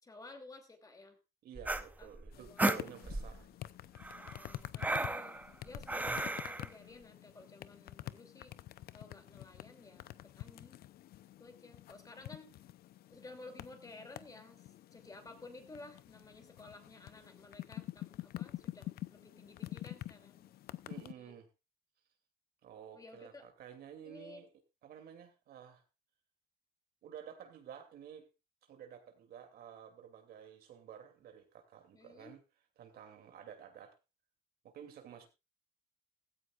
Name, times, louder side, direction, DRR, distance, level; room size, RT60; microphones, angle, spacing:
voice 1, 0.0-1.2 1.8-2.1 2.4-2.7 4.1-8.5 8.9-10.1 10.4-10.8 11.4-12.5 13.1-20.5 21.2-21.3 22.9-23.5 24.0-24.4 31.9-32.3, left 2 dB, 20° left, 6 dB, 2.8 m, -54 dB
voice 2, 1.4-3.5 20.9-21.5 22.6-24.5 24.8-25.8 27.0-28.3 28.7-32.4 32.8-34.0 34.6-35.3, right 8 dB, 65° right, 6 dB, 2.8 m, -52 dB
sound 1, 1.6-3.4 4.0-6.7, right 2 dB, 10° right, 0.8 m, -35 dB
sound 2, 2.3-21.1, left 14 dB, 65° left, 0.7 m, -47 dB
16.0 x 14.5 x 2.5 m, 0.26 s
cardioid pair, 110°, 17 cm